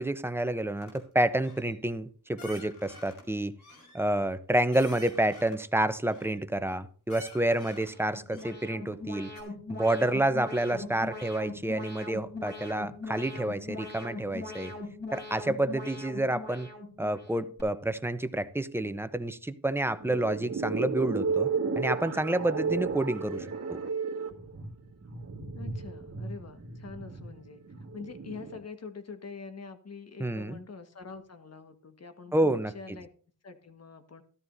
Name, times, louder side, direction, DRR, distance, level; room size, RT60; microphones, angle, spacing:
voice 1, 0.0-3.6 3.9-9.3 9.7-14.7 15.1-16.7 17.0-21.5 21.8-23.8 30.2-30.6 32.3-32.7, right 1 dB, 5° right, 0.7 m, -29 dB
sound 1, 0.8-1.0 1.4-1.8 2.4-3.2 3.6-5.7 6.1-6.8 7.1-8.0 8.3-9.0 9.4-9.5, left 2 dB, 85° left, 4.0 m, -49 dB
Alarm, 7.7-17.6, left 2 dB, 30° left, 4.6 m, -41 dB
sound 2, 20.0-28.6, right 4 dB, 45° right, 2.0 m, -33 dB
voice 2, 25.5-27.6 27.9-33.1 33.4-34.2, left 4 dB, 45° left, 1.5 m, -45 dB
13.5 x 12.5 x 2.7 m
cardioid pair, 75°, 35 cm